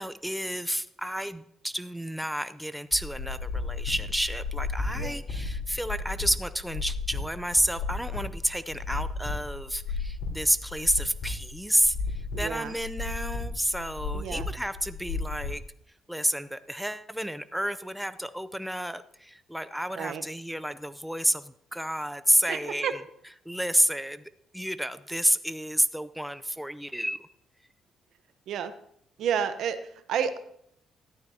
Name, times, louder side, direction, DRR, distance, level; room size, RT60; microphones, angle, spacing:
voice 1, 0.0-15.6 16.1-23.0 23.5-24.2 24.5-27.3, equal, ahead, 12 dB, 0.5 m, -30 dB
sound 1, 2.9-15.5, left 4 dB, 70° left, 3.6 m, -34 dB
voice 2, 12.3-12.7 14.1-14.5 20.0-20.2 22.5-22.9 28.5-28.7 29.2-30.4, right 8 dB, 75° right, 11 dB, 0.8 m, -30 dB
14.0 x 12.0 x 2.8 m, 0.71 s
cardioid pair, 90°, 0 cm